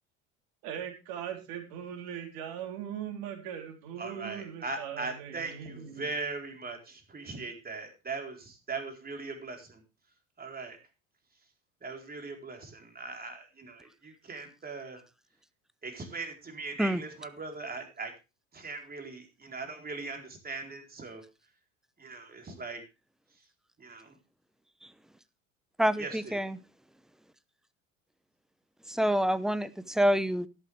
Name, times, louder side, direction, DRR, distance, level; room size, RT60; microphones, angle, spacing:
voice 1, 0.6-6.1, right 9 dB, 60° right, 4 dB, 3.7 m, -40 dB
voice 2, 4.0-9.8 10.4-10.8 11.8-15.0 15.8-18.1 18.5-21.2 22.0-22.8 23.8-24.1 26.0-26.5, right 3 dB, 20° right, 3 dB, 4.0 m, -40 dB
voice 3, 25.8-26.6 28.9-30.5, equal, ahead, 16 dB, 0.8 m, -27 dB
13.0 x 11.5 x 3.4 m, 0.28 s
figure-of-eight pair, 70°, 40 cm